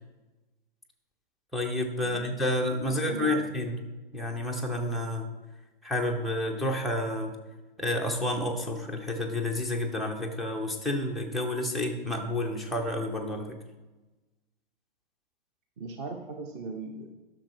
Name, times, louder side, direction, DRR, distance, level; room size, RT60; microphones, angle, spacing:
voice 1, 1.5-3.8 4.1-5.3 5.8-7.4 7.8-13.6, left 1 dB, ahead, -1 dB, 0.3 m, -30 dB
voice 2, 2.8-3.5 15.8-17.1, right 3 dB, 30° right, 5 dB, 0.8 m, -39 dB
11.5 x 6.2 x 4.5 m, 1.1 s
figure-of-eight pair, 110°, 29 cm